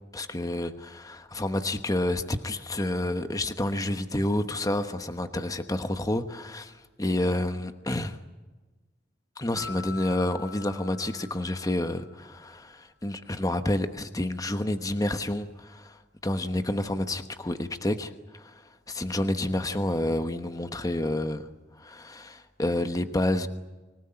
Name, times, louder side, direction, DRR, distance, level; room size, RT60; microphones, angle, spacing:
voice 1, 0.1-8.2 9.4-21.5 21.8-23.5, left 1 dB, 20° left, 1.1 m, -29 dB
sound 1, 9.6-12.3, left 5 dB, 5° left, 6.0 m, -44 dB
25.5 x 17.5 x 9.8 m
head